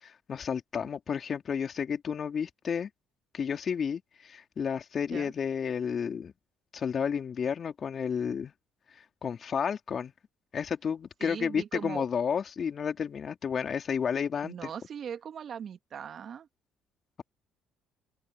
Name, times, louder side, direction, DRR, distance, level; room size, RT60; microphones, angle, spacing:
voice 1, 0.0-2.9 3.3-6.3 6.7-8.5 9.2-10.1 10.5-14.7, left 7 dB, 45° left, 3.2 m, -31 dB
voice 2, 11.2-12.0 14.4-16.5, right 8 dB, 50° right, 2.1 m, -40 dB
open air
supercardioid pair, 70°, 0 cm